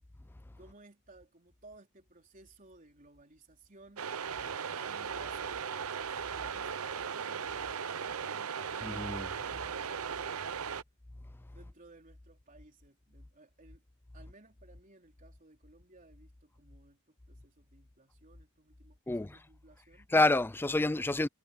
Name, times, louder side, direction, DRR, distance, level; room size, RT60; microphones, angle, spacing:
voice 1, 0.6-4.1 4.4-9.2 9.5-10.8 11.5-13.8 14.1-20.1, right 2 dB, 40° right, 3.9 m, -59 dB
sound 1, 4.0-10.8, right 7 dB, 85° right, 0.7 m, -37 dB
voice 2, 8.8-9.3 19.1-19.4 20.1-21.3, left 2 dB, 10° left, 0.4 m, -28 dB
head